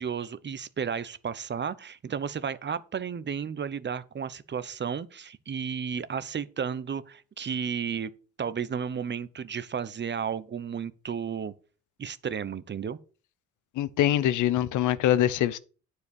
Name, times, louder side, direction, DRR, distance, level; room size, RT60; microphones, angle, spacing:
voice 1, 0.0-8.1 8.4-11.5 12.0-13.0, right 7 dB, 35° right, 0.8 m, -33 dB
voice 2, 13.8-15.6, left 12 dB, 80° left, 0.8 m, -24 dB
9.5 x 4.8 x 6.9 m
cardioid pair, 90°, 30 cm